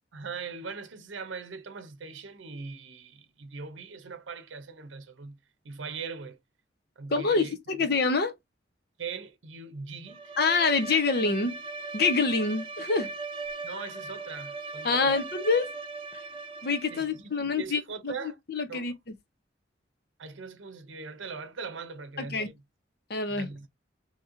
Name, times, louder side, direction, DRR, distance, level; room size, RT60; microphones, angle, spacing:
voice 1, 0.1-5.4 5.6-6.4 7.0-7.6 9.0-10.2 13.6-15.2 16.9-18.4 18.7-18.9 20.2-22.6 23.3-23.7, right 5 dB, 90° right, 0.6 m, -40 dB
voice 2, 7.1-8.3 10.4-11.6 11.9-13.1 14.8-15.7 16.6-19.2 22.2-22.5 23.1-23.5, left 4 dB, 55° left, 0.7 m, -26 dB
Bowed string instrument, 10.1-17.2, right 3 dB, 30° right, 0.4 m, -39 dB
2.9 x 2.9 x 3.6 m
head